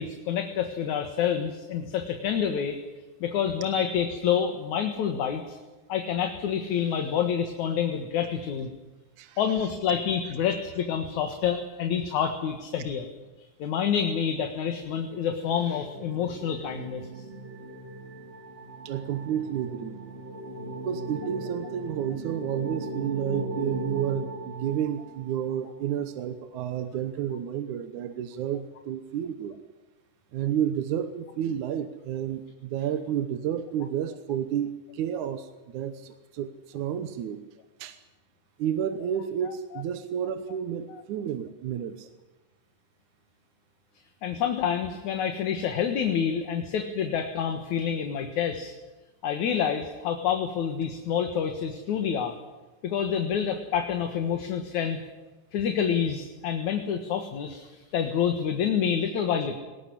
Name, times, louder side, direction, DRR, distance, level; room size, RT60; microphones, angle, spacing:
voice 1, 0.0-2.8 3.2-5.6 5.9-8.7 9.4-13.1 13.6-17.1 39.5-39.6 40.9-41.0 44.2-48.7 49.2-52.3 52.8-55.0 55.5-59.6, left 8 dB, 65° left, 5 dB, 2.8 m, -28 dB
voice 2, 9.2-9.7 18.9-20.0 20.8-29.6 30.3-37.4 37.8-38.0 38.6-42.1, right 9 dB, 70° right, 10 dB, 2.4 m, -31 dB
sound 1, 14.7-25.4, right 1 dB, 20° right, 2.8 m, -38 dB
19.5 x 19.0 x 9.9 m, 1.1 s
omnidirectional pair, 3.7 m